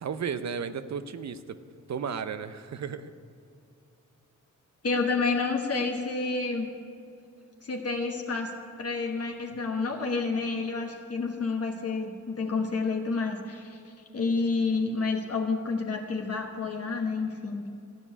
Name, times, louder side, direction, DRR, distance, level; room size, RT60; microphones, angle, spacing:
voice 1, 0.0-1.6 1.9-3.1, right 6 dB, 60° right, 12 dB, 0.7 m, -34 dB
voice 2, 4.8-6.7 7.6-8.5 8.8-17.7, left 4 dB, 50° left, 2 dB, 1.2 m, -29 dB
15.0 x 5.3 x 9.6 m, 2.5 s
cardioid pair, 75°, 31 cm